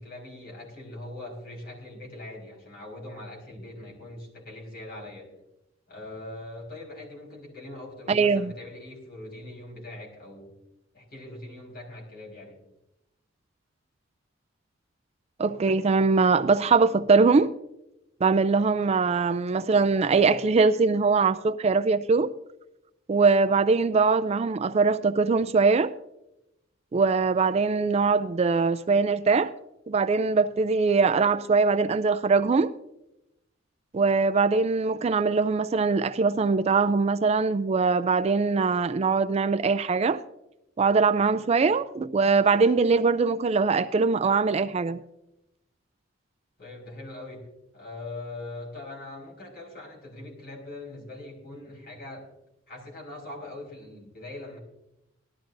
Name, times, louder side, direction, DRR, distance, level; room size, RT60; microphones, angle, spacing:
voice 1, 0.0-5.3 5.9-10.5 10.9-12.6 46.6-47.5 47.7-52.3 52.7-54.6, left 2 dB, 50° left, 4.6 m, -41 dB
voice 2, 8.1-8.5 15.4-17.5 18.2-22.3 23.1-25.9 26.9-29.5 29.9-32.7 33.9-40.2 40.8-45.0, right 4 dB, 35° right, 0.4 m, -22 dB
19.0 x 13.0 x 2.6 m
head